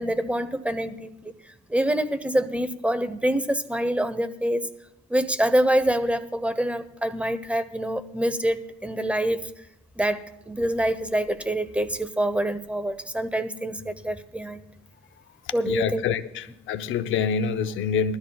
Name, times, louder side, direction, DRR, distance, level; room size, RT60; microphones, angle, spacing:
voice 1, 0.0-1.3 1.7-4.7 5.1-9.5 10.0-14.6 15.5-16.0, right 1 dB, 5° right, 0.9 m, -26 dB
voice 2, 15.4-18.2, left 7 dB, 80° left, 0.7 m, -26 dB
20.5 x 13.0 x 2.4 m
cardioid pair, 90°, 20 cm